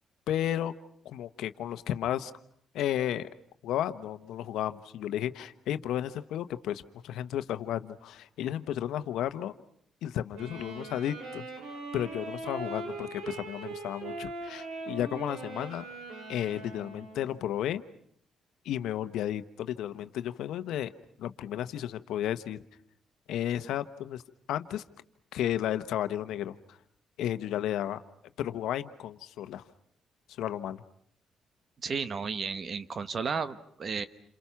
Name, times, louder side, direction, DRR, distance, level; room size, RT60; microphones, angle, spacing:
voice 1, 0.3-0.7 1.0-2.3 2.7-3.3 3.6-9.5 10.0-11.4 11.9-15.9 16.3-17.8 18.6-20.9 21.2-22.6 23.3-24.2 24.5-24.8 25.3-26.5 27.2-28.0 28.4-29.6 30.4-30.8, left 11 dB, 85° left, 11 dB, 1.0 m, -33 dB
Wind instrument woodwind instrument, 10.3-17.5, right 3 dB, 85° right, 6.1 m, -41 dB
voice 2, 31.8-34.0, right 5 dB, 45° right, 12 dB, 1.4 m, -33 dB
29.0 x 27.5 x 5.8 m, 0.66 s
cardioid pair, 90°, 0 cm